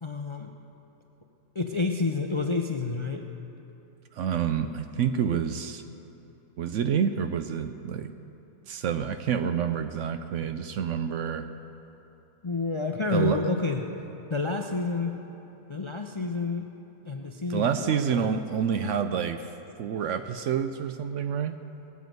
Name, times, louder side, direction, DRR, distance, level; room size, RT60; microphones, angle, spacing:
voice 1, 0.0-0.5 1.5-3.2 12.4-13.8 14.3-15.1 15.7-16.7 17.0-18.4, left 3 dB, 35° left, 3 dB, 0.5 m, -29 dB
voice 2, 4.1-5.8 6.6-8.1 8.7-11.5 13.1-13.4 17.5-19.5 19.8-21.6, right 8 dB, 65° right, 9 dB, 0.8 m, -28 dB
18.5 x 9.3 x 7.9 m, 2.9 s
omnidirectional pair, 1.5 m